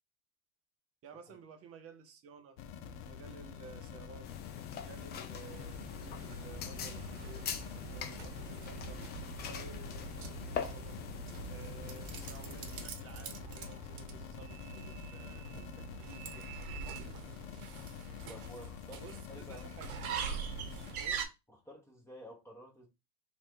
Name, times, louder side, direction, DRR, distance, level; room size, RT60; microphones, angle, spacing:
voice 1, 1.0-2.6 3.0-4.3 4.7-7.6 7.9-9.1 9.4-11.0 11.4-16.9 18.9-20.0 21.0-21.3, right 5 dB, 35° right, 0.8 m, -54 dB
sound 1, 2.6-21.0, left 8 dB, 55° left, 0.7 m, -47 dB
sound 2, 4.2-12.9, left 8 dB, 25° left, 0.4 m, -44 dB
sound 3, 5.4-21.2, right 7 dB, 90° right, 0.9 m, -44 dB
voice 2, 18.3-19.7 21.5-22.9, equal, 5° left, 1.0 m, -51 dB
3.2 x 2.5 x 4.4 m
supercardioid pair, 125°, 42 cm